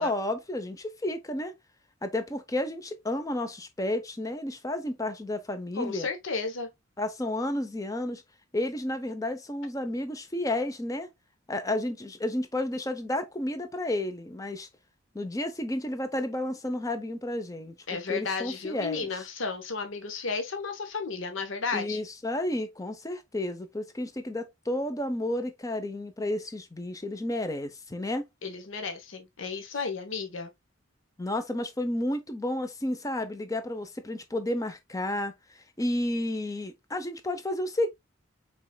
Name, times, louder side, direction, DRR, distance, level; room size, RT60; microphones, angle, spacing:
voice 1, 0.0-1.5 2.0-6.1 7.0-8.2 8.5-11.1 11.5-14.7 15.1-17.8 18.1-19.3 21.7-28.3 31.2-37.9, left 1 dB, 15° left, 0.6 m, -31 dB
voice 2, 5.8-6.7 17.9-22.0 28.4-30.5, left 4 dB, 65° left, 0.9 m, -33 dB
5.4 x 4.1 x 2.2 m
head